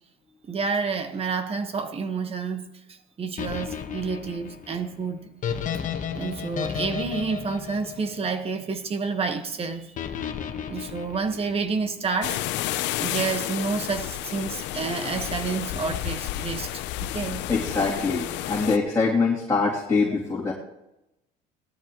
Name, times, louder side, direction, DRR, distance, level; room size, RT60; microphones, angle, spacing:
voice 1, 0.5-2.7 3.2-5.3 6.1-9.9 10.7-12.4 12.9-17.4, right 4 dB, 30° right, 1.4 m, -29 dB
sound 1, 3.4-8.7 10.0-11.9, left 7 dB, 45° left, 1.4 m, -33 dB
sound 2, 12.2-18.8, left 14 dB, 75° left, 0.7 m, -31 dB
voice 2, 17.5-20.5, left 4 dB, 15° left, 3.0 m, -24 dB
18.5 x 13.0 x 3.1 m
cardioid pair, 120°, 18 cm